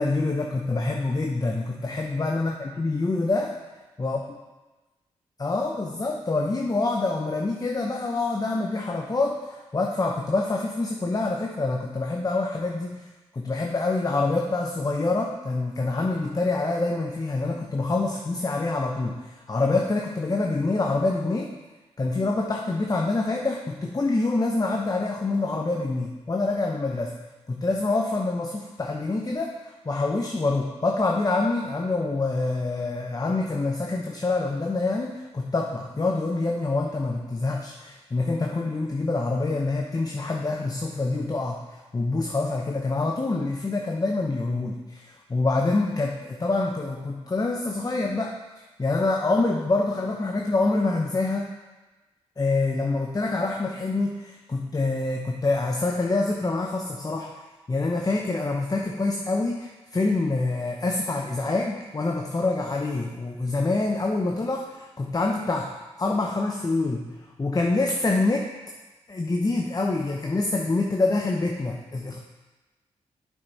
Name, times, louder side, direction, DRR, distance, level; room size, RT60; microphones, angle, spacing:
voice 1, 0.0-3.5 4.0-4.2 5.4-13.1 13.3-21.5 22.0-27.1 27.5-51.5 52.4-57.4 57.7-65.7 66.0-67.1 67.4-68.5 69.1-72.2, left 3 dB, 30° left, 1 dB, 0.8 m, -26 dB
7.5 x 5.7 x 4.1 m, 1.2 s
supercardioid pair, 45°, 13 cm